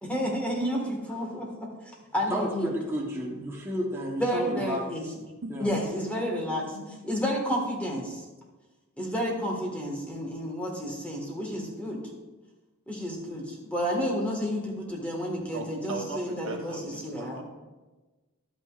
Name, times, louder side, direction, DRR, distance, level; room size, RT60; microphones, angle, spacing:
voice 1, 0.0-1.7 2.1-2.7 4.2-5.0 5.6-6.8 7.1-8.2 9.0-12.0 12.9-17.4, equal, 5° left, -1 dB, 1.7 m, -30 dB
voice 2, 2.3-5.1 5.5-5.7, equal, 10° right, -3 dB, 1.1 m, -32 dB
voice 3, 15.5-17.4, right 3 dB, 65° right, 2 dB, 1.1 m, -38 dB
11.5 x 8.9 x 2.5 m, 1.2 s
head